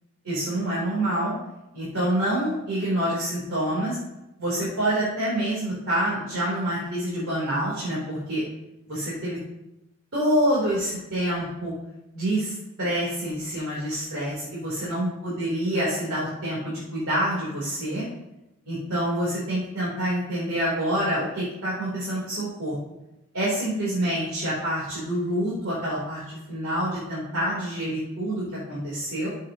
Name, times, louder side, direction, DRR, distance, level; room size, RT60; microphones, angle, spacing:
voice 1, 0.2-1.3 1.7-4.0 4.4-8.4 8.9-9.4 10.1-11.7 12.1-18.0 18.6-22.7 23.3-29.3, right 1 dB, 75° right, -7 dB, 3.4 m, -27 dB
13.5 x 7.3 x 2.9 m, 0.92 s
head